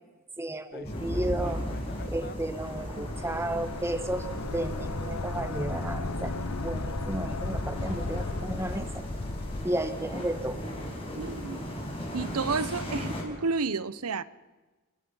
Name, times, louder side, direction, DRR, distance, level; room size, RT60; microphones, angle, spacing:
voice 1, 0.4-1.6 2.1-6.4 6.6-9.0 9.6-10.6, right 1 dB, 10° right, 10 dB, 1.2 m, -33 dB
sound 1, 0.7-2.4 2.6-2.7 3.1-9.7, left 2 dB, 45° left, 0.9 m, -38 dB
sound 2, 0.8-13.2, equal, 25° left, 5.6 m, -37 dB
sound 3, 2.6-9.0, left 2 dB, 85° left, 1.6 m, -37 dB
voice 2, 11.2-11.6 12.1-14.2, right 4 dB, 85° right, 17 dB, 0.9 m, -31 dB
29.5 x 18.5 x 5.6 m, 1.2 s
head